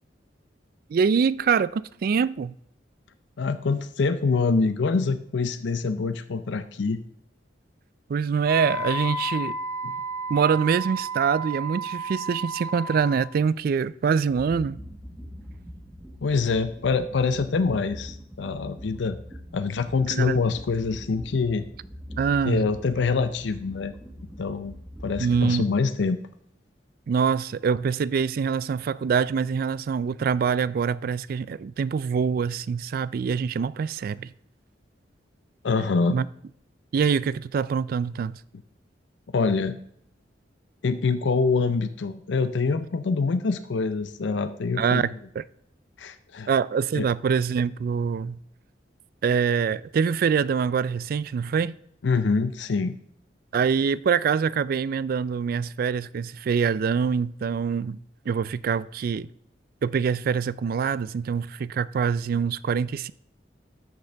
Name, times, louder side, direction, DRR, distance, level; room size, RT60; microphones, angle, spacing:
voice 1, 0.9-2.5 8.1-9.5 10.3-14.8 20.1-20.4 22.2-22.6 25.2-25.6 27.1-34.3 36.1-36.2 36.9-38.3 44.8-45.4 46.5-48.4 49.2-51.8 53.5-58.0 58.3-59.3 59.8-63.1, right 6 dB, 55° right, 0.3 m, -24 dB
voice 2, 3.4-7.0 9.8-9.9 16.2-19.2 19.5-21.6 22.4-23.9 24.4-24.7 25.0-26.2 35.6-36.2 39.3-39.8 40.8-45.0 46.0-46.5 46.9-47.1 52.0-53.0, left 4 dB, 80° left, 0.5 m, -25 dB
Wind instrument woodwind instrument, 8.4-13.2, right 1 dB, 25° right, 2.7 m, -32 dB
sound 1, 14.3-25.6, equal, 5° right, 1.3 m, -42 dB
13.0 x 6.6 x 3.4 m
head